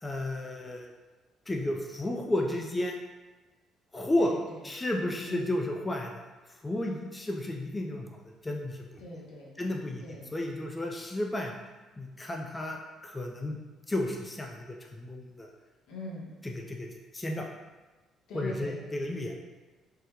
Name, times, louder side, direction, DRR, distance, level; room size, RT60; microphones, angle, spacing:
voice 1, 0.0-0.9 1.5-2.9 3.9-4.3 4.6-6.3 6.6-9.0 9.6-10.0 10.3-11.5 12.0-13.6 13.9-15.5 16.4-16.9 17.1-17.5 18.3-19.3, left 1 dB, 20° left, 1 dB, 0.4 m, -32 dB
voice 2, 4.2-4.6 5.2-5.5 9.0-10.3 15.9-16.3 18.3-18.8, left 1 dB, 80° left, -3 dB, 0.7 m, -42 dB
3.6 x 2.1 x 2.9 m, 1.2 s
supercardioid pair, 65°, 0 cm